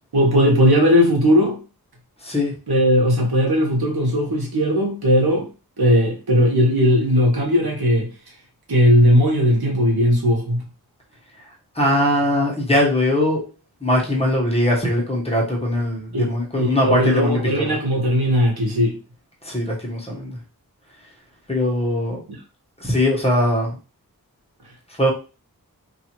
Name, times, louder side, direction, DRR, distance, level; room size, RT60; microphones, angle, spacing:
voice 1, 0.1-1.6 2.7-5.5 5.8-8.1 8.7-10.6 16.1-18.9 22.3-22.4, equal, 85° right, 1.1 m, -18 dB
voice 2, 11.8-13.4 13.8-17.8 19.4-20.4 21.5-22.2 22.8-23.7 25.0-25.1, left 1 dB, 15° left, 1.1 m, -20 dB
2.6 x 2.6 x 3.0 m
wide cardioid pair, 55°, 37 cm